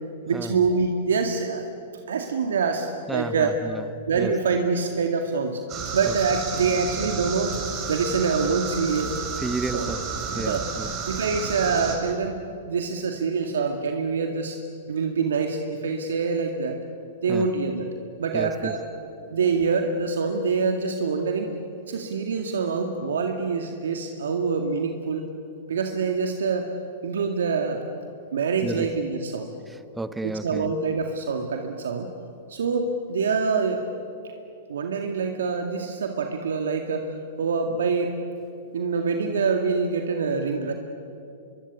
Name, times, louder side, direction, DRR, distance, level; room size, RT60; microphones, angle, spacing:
voice 1, 0.3-1.7 2.1-3.5 4.1-5.6 5.9-7.6 7.9-9.2 9.7-9.9 10.4-10.7 11.1-14.6 14.9-16.8 17.2-17.9 18.2-18.8 19.3-21.6 21.9-25.3 25.7-26.7 27.0-27.8 28.3-29.5 30.2-32.1 32.5-33.8 34.7-38.2 38.7-40.7, right 5 dB, 80° right, 4 dB, 2.1 m, -25 dB
voice 2, 3.1-4.3 6.1-6.2 9.4-10.0 10.3-10.9 17.3-17.5 18.3-18.8 28.6-28.9 30.0-30.7, right 2 dB, 5° right, 12 dB, 1.1 m, -32 dB
sound 1, 5.7-12.0, right 5 dB, 35° right, 6.2 m, -32 dB
24.5 x 23.5 x 8.5 m, 2.6 s
hypercardioid pair, 115°, 0 cm